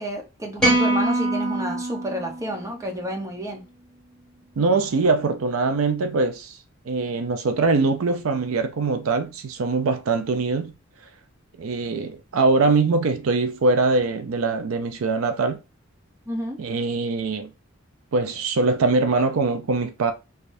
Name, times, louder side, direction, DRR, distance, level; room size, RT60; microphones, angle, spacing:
voice 1, 0.0-3.6 16.3-16.6, equal, 15° right, 0.9 m, -30 dB
sound 1, 0.6-3.0, right 2 dB, 5° left, 1.8 m, -24 dB
voice 2, 4.6-6.6 6.9-10.7 11.6-15.6 16.6-17.5 18.1-20.1, right 3 dB, 80° right, 0.5 m, -22 dB
3.3 x 3.3 x 2.6 m
head